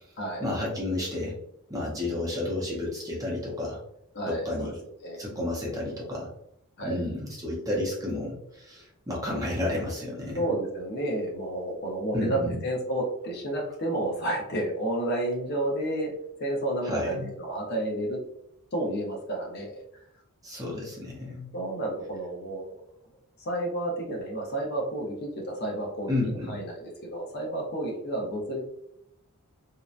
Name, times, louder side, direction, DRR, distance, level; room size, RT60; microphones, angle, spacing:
voice 1, 0.4-1.4 1.7-3.8 4.3-4.7 5.2-6.3 6.8-10.5 12.1-12.6 16.8-17.3 20.4-21.5 26.1-26.6, left 1 dB, 15° right, -3 dB, 0.5 m, -31 dB
voice 2, 4.1-4.7 5.0-5.3 6.8-7.0 10.4-16.1 16.4-18.2 18.7-19.8 21.5-22.8 23.4-28.6, right 1 dB, 45° left, -1 dB, 0.6 m, -31 dB
2.7 x 2.1 x 2.4 m, 0.75 s
head